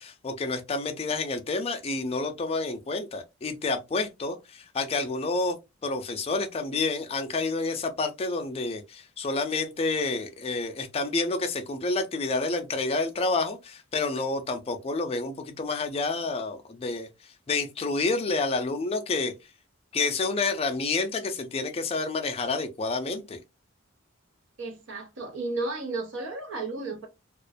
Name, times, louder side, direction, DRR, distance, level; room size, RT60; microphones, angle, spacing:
voice 1, 0.0-17.1 17.5-19.3 19.9-23.4, left 3 dB, 30° left, 0.4 m, -29 dB
voice 2, 24.6-27.1, right 3 dB, 65° right, 0.6 m, -33 dB
2.4 x 2.1 x 2.5 m
head